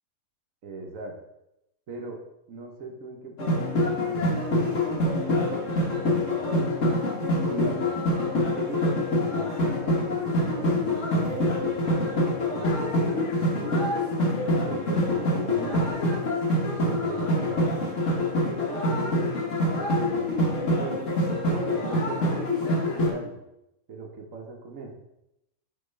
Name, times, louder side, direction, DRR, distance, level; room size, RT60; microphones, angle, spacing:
voice 1, 0.6-1.1 1.9-2.2 2.5-6.7 7.5-7.9 8.5-14.0 14.6-15.9 16.8-17.9 18.4-19.4 19.8-21.1 21.4-23.4 23.9-24.9, right 3 dB, 65° right, 2 dB, 1.2 m, -39 dB
sound 1, 3.4-23.1, left 1 dB, 60° left, 1.6 m, -25 dB
5.8 x 3.2 x 5.4 m, 0.86 s
omnidirectional pair, 1.5 m